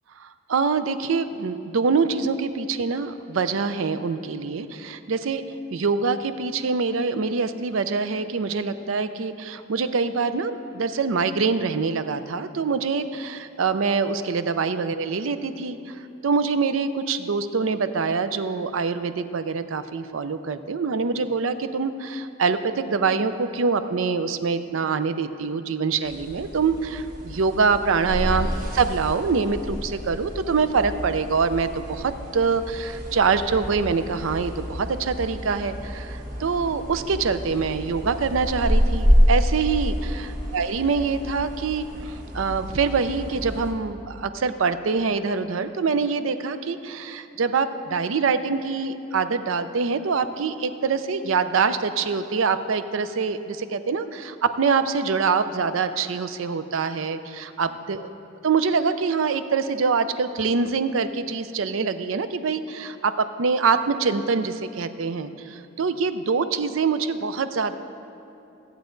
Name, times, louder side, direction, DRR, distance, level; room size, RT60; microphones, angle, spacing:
voice 1, 0.2-5.4 5.7-28.5 28.7-58.1 58.4-67.7, right 5 dB, 85° right, 11 dB, 0.5 m, -25 dB
sound 1, 26.0-43.7, equal, 45° right, 1.4 m, -28 dB
15.0 x 8.2 x 3.9 m, 2.8 s
head